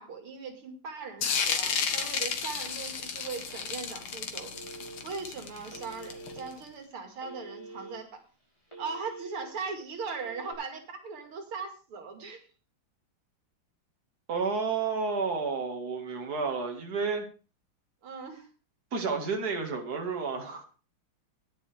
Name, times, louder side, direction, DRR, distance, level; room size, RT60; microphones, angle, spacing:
voice 1, 0.0-4.5 5.0-8.2 8.8-12.5 18.0-18.5, right 5 dB, 90° right, 5 dB, 3.1 m, -39 dB
sound 1, 1.2-6.5, left 6 dB, 75° left, 2.4 m, -32 dB
Telephone, 4.5-5.2 5.7-6.5 7.2-8.0 8.4-9.5 10.1-10.5, right 3 dB, 15° left, 5.6 m, -45 dB
voice 2, 14.3-17.3 18.9-20.6, right 4 dB, 45° right, 2 dB, 2.7 m, -31 dB
16.5 x 10.5 x 3.6 m, 0.35 s
omnidirectional pair, 2.3 m